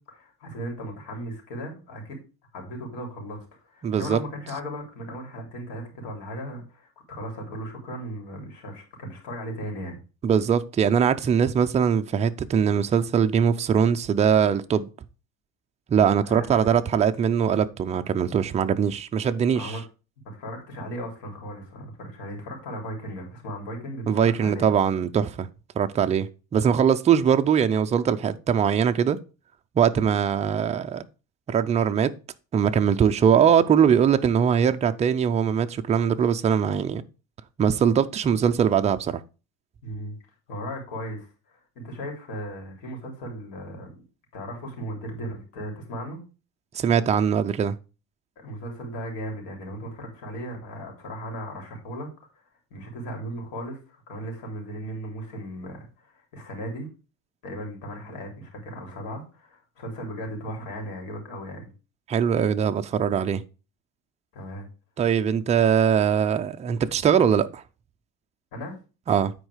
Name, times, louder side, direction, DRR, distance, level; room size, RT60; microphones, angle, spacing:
voice 1, 0.1-2.2 2.5-10.0 16.3-16.7 19.5-19.8 20.3-24.7 39.8-40.2 40.5-44.0 44.3-46.2 48.4-52.1 52.3-52.4 52.7-56.9 57.4-61.7 64.3-64.6 68.5-68.8, equal, 75° left, 3.7 m, -36 dB
voice 2, 3.8-4.2 10.2-14.9 15.9-19.8 24.1-25.5 25.8-29.2 29.8-31.0 31.5-32.1 32.5-37.0 37.6-39.2 46.7-47.7 62.1-63.4 65.0-67.6 69.1-69.3, right 7 dB, 20° right, 0.4 m, -21 dB
9.4 x 4.5 x 4.9 m
cardioid pair, 150°, 34 cm